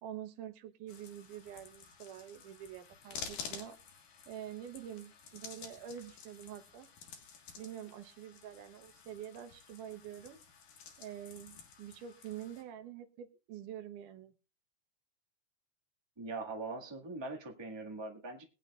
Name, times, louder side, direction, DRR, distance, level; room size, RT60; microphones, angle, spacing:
voice 1, 0.0-3.8 4.3-6.9 7.6-10.4 11.0-14.3, right 10 dB, 90° right, 8 dB, 2.5 m, -46 dB
sound 1, 0.9-12.6, left 6 dB, 75° left, 3.1 m, -51 dB
voice 2, 16.2-18.4, right 3 dB, 10° right, 0 dB, 1.2 m, -42 dB
21.0 x 9.3 x 2.4 m, 0.32 s
omnidirectional pair, 3.5 m